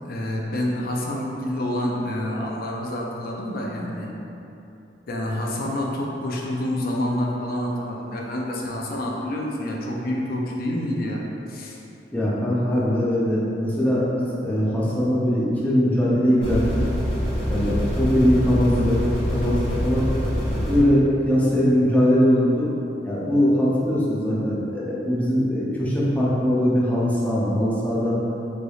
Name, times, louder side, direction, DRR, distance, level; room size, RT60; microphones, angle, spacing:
voice 1, 0.0-4.1 5.1-11.2 11.5-11.8, left 1 dB, 55° left, -2 dB, 0.5 m, -27 dB
voice 2, 12.1-16.6 17.5-20.0 20.5-22.7 23.0-28.1, equal, 10° left, -7 dB, 0.6 m, -21 dB
sound 1, 16.4-20.8, equal, 30° left, 0.9 m, -25 dB
3.9 x 3.3 x 2.3 m, 2.9 s
head